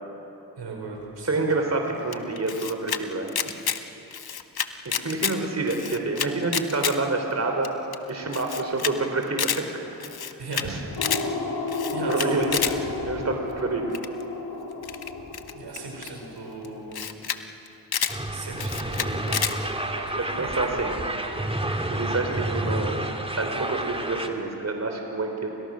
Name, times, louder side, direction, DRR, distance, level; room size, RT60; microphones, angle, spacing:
voice 1, 0.6-1.3 10.4-10.9 11.4-11.6 11.9-12.6 15.5-17.0 18.3-19.6 20.4-21.2, right 3 dB, 80° right, 0 dB, 5.8 m, -37 dB
voice 2, 1.2-3.5 4.9-7.7 8.1-9.8 10.6-10.8 12.0-12.7 13.1-14.0 20.2-20.9 21.9-23.0 23.4-25.5, right 3 dB, 40° right, 3 dB, 3.6 m, -28 dB
Camera, 2.1-3.0 3.3-3.8 4.1-5.4 5.7-7.0 7.3-7.4 7.6-7.7 7.9-8.0 8.3-8.9 9.2-9.6 10.0-10.7 10.9-11.2 11.7-12.7 13.9-14.2 14.8-16.1 16.6-16.7 16.9-17.4 17.7-18.2 18.6-19.5, left 8 dB, 65° left, 1.2 m, -29 dB
sound 1, 11.0-16.8, left 3 dB, 80° left, 4.4 m, -33 dB
sound 2, 18.1-24.3, right 1 dB, 15° right, 2.4 m, -30 dB
29.0 x 26.5 x 6.3 m, 3.0 s
cardioid pair, 50°, 41 cm